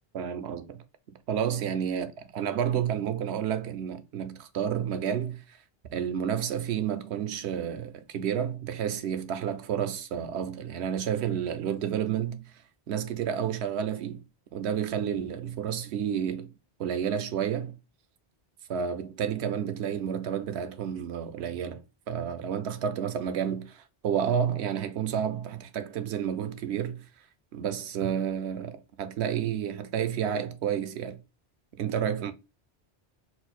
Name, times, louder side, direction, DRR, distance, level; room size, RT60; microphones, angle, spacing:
voice 1, 0.1-0.8 1.3-5.6 5.9-12.4 12.9-14.2 14.5-16.5 16.8-17.8 18.7-27.0 27.5-31.2 31.7-32.3, right 8 dB, 80° right, 0.8 m, -30 dB
4.4 x 2.0 x 4.1 m
omnidirectional pair, 1.1 m